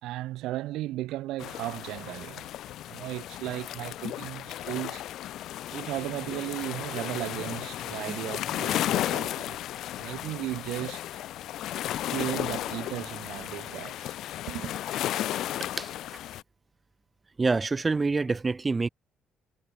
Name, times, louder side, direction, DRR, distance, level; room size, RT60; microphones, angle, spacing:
voice 1, 0.0-2.5 2.9-5.0 5.7-9.6 10.0-11.2 12.1-14.2 14.5-14.7, right 16 dB, 85° right, 0.9 m, -35 dB
sound 1, 1.4-16.4, left 13 dB, 70° left, 0.5 m, -34 dB
voice 2, 17.4-18.9, right 3 dB, 20° right, 0.4 m, -26 dB
cardioid pair, 130°, 0 cm